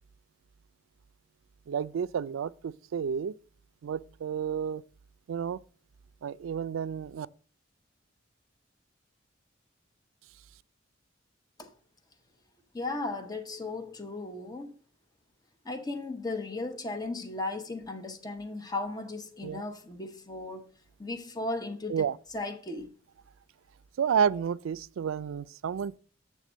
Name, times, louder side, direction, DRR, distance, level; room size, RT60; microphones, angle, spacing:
voice 1, 1.7-3.3 3.8-4.8 5.3-5.6 6.2-7.3 19.4-19.6 21.9-22.2 24.0-26.0, right 7 dB, 85° right, 0.3 m, -30 dB
voice 2, 12.7-14.7 15.6-20.7 21.0-21.9 22.3-22.9, left 2 dB, 20° left, 0.8 m, -36 dB
8.3 x 3.6 x 6.1 m
head